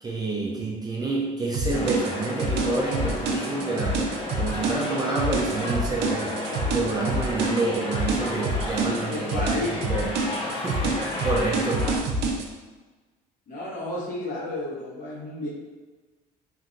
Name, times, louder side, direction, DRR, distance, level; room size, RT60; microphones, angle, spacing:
voice 1, 0.0-4.1 4.4-9.5 9.8-10.2 10.6-11.9, right 3 dB, 25° right, -3 dB, 0.5 m, -28 dB
sound 1, 1.5-12.5, right 2 dB, 80° right, 0.4 m, -28 dB
sound 2, 1.7-12.0, left 1 dB, 30° left, 0.8 m, -33 dB
voice 2, 9.1-9.9 13.5-15.5, left 2 dB, 50° left, -8 dB, 1.4 m, -32 dB
3.0 x 2.6 x 2.5 m, 1.3 s
cardioid pair, 110°, 17 cm